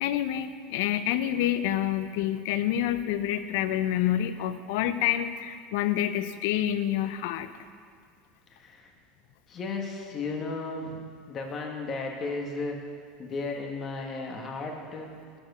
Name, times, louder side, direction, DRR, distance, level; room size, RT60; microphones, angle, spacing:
voice 1, 0.0-7.5, left 11 dB, 75° left, 12 dB, 0.6 m, -27 dB
voice 2, 8.5-8.9 9.5-12.8 13.2-15.1, left 3 dB, 40° left, 2 dB, 1.9 m, -34 dB
11.5 x 5.1 x 8.5 m, 2.2 s
supercardioid pair, 100°, 0 cm